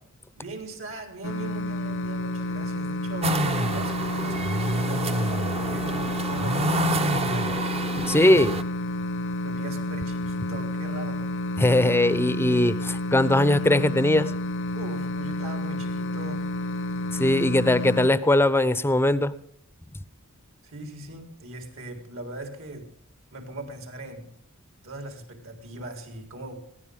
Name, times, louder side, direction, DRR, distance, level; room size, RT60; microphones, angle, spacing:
voice 1, 0.4-7.7 8.2-8.4 9.4-11.2 12.4-12.8 14.7-16.5 20.6-22.9 23.3-24.3 24.8-26.6, right 1 dB, 65° right, 6 dB, 4.2 m, -40 dB
sound 1, 1.2-18.1, left 1 dB, 60° left, 0.9 m, -30 dB
sound 2, 3.2-8.6, right 1 dB, 30° right, 1.0 m, -27 dB
voice 2, 8.1-8.5 11.6-12.7 13.1-14.3 17.1-19.3, left 1 dB, 10° left, 15 dB, 0.8 m, -20 dB
21.0 x 16.0 x 3.7 m, 0.65 s
head